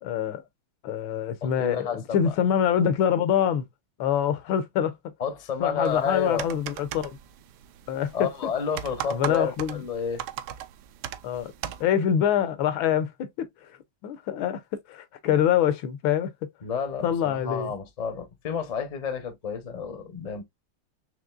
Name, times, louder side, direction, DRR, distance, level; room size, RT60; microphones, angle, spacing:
voice 1, 0.0-0.4 0.8-3.6 4.0-5.0 5.6-7.1 7.9-8.3 9.1-9.8 11.2-11.5 11.8-13.1 14.0-14.6 14.9-16.3 17.0-17.7, left 9 dB, 80° left, 1.4 m, -25 dB
voice 2, 1.4-2.3 5.2-6.4 8.1-10.2 16.6-20.4, left 6 dB, 45° left, 0.5 m, -30 dB
sound 1, 5.9-11.8, right 11 dB, 75° right, 0.9 m, -38 dB
5.1 x 3.0 x 2.3 m
omnidirectional pair, 2.3 m